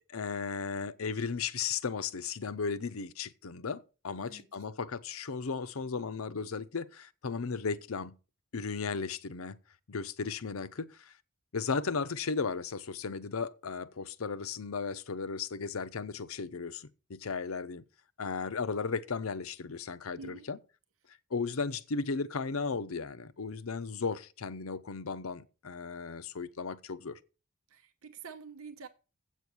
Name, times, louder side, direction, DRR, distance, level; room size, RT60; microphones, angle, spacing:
voice 1, 0.1-8.1 8.5-9.6 9.9-11.1 11.5-17.8 18.2-20.6 21.3-27.2, left 5 dB, 85° left, 0.7 m, -35 dB
voice 2, 4.2-4.6 20.2-20.5 27.7-28.9, right 5 dB, 85° right, 0.9 m, -47 dB
8.1 x 6.3 x 6.8 m
head